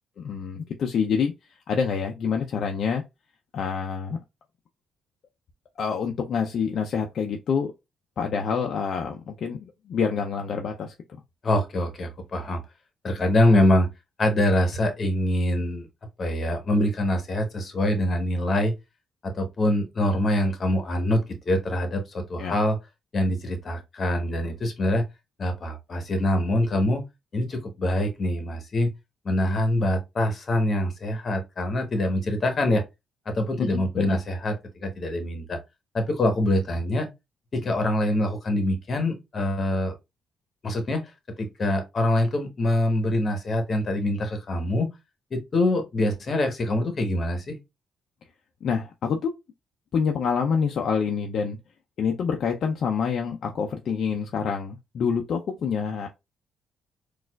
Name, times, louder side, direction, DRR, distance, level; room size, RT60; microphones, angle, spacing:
voice 1, 0.2-1.3 1.7-3.0 3.5-4.2 5.8-7.7 8.2-10.9 22.4-22.5 33.6-34.2 48.6-49.4 49.9-51.6 52.0-56.1, left 6 dB, 60° left, 0.4 m, -27 dB
voice 2, 11.4-12.6 13.0-13.9 14.2-15.9 16.2-18.7 19.2-21.2 21.5-22.8 23.1-25.0 25.4-27.0 27.3-28.9 29.2-32.8 33.3-35.6 35.9-37.1 37.5-39.9 40.6-41.1 41.4-44.9 45.3-47.6, left 1 dB, 45° left, 1.0 m, -24 dB
4.2 x 2.4 x 2.2 m
cardioid pair, 90°, 0 cm